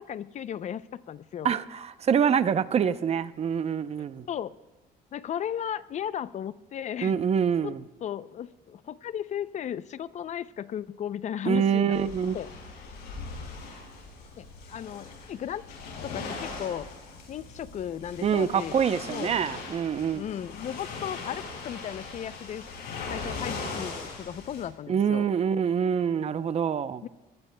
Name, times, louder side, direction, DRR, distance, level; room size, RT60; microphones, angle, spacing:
voice 1, 0.0-1.5 4.0-4.6 5.1-7.2 7.6-7.7 8.0-12.0 12.3-12.5 14.4-15.6 16.0-16.9 17.3-18.8 19.1-19.4 20.1-22.6 23.1-25.3 27.0-27.1, left 9 dB, 45° left, 16 dB, 0.4 m, -35 dB
voice 2, 1.4-4.3 7.0-7.8 11.5-12.4 18.2-20.2 24.9-27.0, right 7 dB, 40° right, 13 dB, 0.6 m, -25 dB
sound 1, 11.9-24.7, left 4 dB, 80° left, 6.1 m, -40 dB
25.0 x 18.5 x 2.2 m, 1.1 s
cardioid pair, 110°, 17 cm